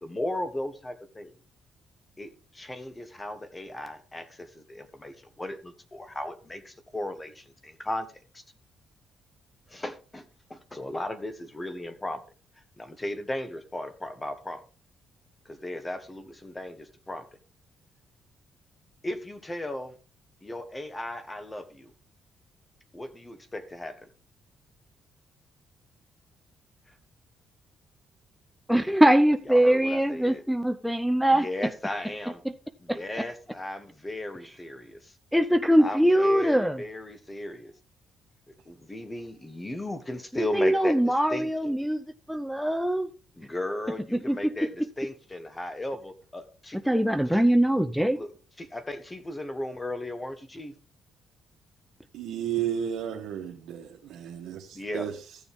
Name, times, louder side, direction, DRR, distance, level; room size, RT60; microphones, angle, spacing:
voice 1, 0.0-1.3 2.2-8.4 9.7-12.2 12.8-14.6 15.4-17.3 19.0-19.9 20.4-21.9 22.9-24.1 29.5-30.4 31.3-32.4 32.8-35.1 35.8-37.7 38.5-41.7 43.3-46.8 47.3-47.4 48.1-48.3 48.6-50.7 54.7-55.1, left 1 dB, 20° left, 1.3 m, -36 dB
voice 2, 28.7-31.5 32.9-33.0 35.3-36.8 40.3-43.1 44.1-44.4 46.9-48.2, right 1 dB, ahead, 0.6 m, -22 dB
voice 3, 52.1-55.4, right 9 dB, 80° right, 1.2 m, -33 dB
14.0 x 7.0 x 3.6 m
cardioid pair, 90°, 0 cm